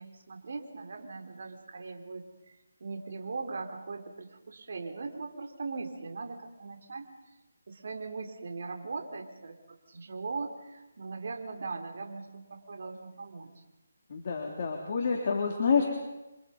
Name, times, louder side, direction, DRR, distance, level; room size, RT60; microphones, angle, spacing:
voice 1, 0.0-2.3 2.8-7.1 7.7-13.5, right 4 dB, 55° right, 3 dB, 4.3 m, -40 dB
voice 2, 14.1-15.8, left 5 dB, 40° left, 0 dB, 3.3 m, -28 dB
29.5 x 25.5 x 5.4 m, 1.0 s
hypercardioid pair, 165°, 0 cm